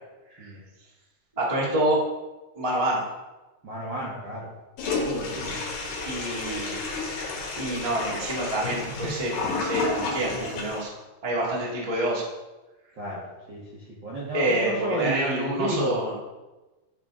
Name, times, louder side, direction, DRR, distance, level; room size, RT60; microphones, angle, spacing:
voice 1, 1.3-2.0 2.5-3.0 6.0-7.0 7.6-10.9 11.2-12.2 14.3-16.1, right 1 dB, 30° right, -5 dB, 0.6 m, -27 dB
voice 2, 3.6-4.5 5.0-5.6 13.0-13.2 13.5-16.1, right 1 dB, 70° right, -6 dB, 1.1 m, -32 dB
Toilet flush, 4.8-10.8, left 3 dB, 90° left, 3.8 m, -31 dB
10.0 x 5.6 x 3.7 m, 1.1 s
omnidirectional pair, 4.7 m